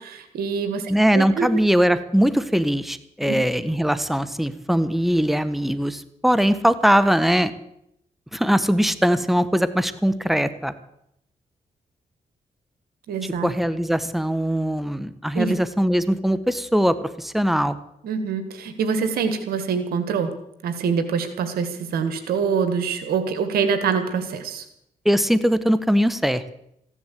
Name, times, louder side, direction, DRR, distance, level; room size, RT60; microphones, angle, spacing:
voice 1, 0.0-1.5 3.3-3.4 13.1-13.5 15.4-15.6 18.0-20.3 20.6-24.6, right 6 dB, 90° right, 10 dB, 1.7 m, -25 dB
voice 2, 0.9-7.5 8.3-10.7 13.2-17.7 25.0-26.5, equal, ahead, 14 dB, 1.4 m, -21 dB
15.0 x 11.0 x 8.4 m, 0.77 s
cardioid pair, 55°, 15 cm